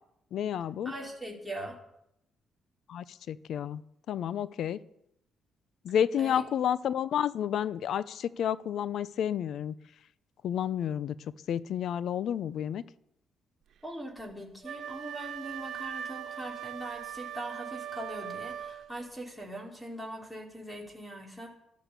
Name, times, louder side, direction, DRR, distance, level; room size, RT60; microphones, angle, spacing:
voice 1, 0.3-0.9 2.9-3.8 4.1-4.8 5.8-9.7 10.4-11.1 11.5-12.8, left 9 dB, 70° left, 18 dB, 0.7 m, -30 dB
voice 2, 0.8-1.8 6.2-6.4 13.8-21.5, right 1 dB, 5° left, 1 dB, 3.9 m, -41 dB
Wind instrument woodwind instrument, 14.6-19.1, right 10 dB, 65° right, 1.6 m, -40 dB
12.5 x 12.0 x 8.3 m, 0.80 s
cardioid pair, 90°, 0 cm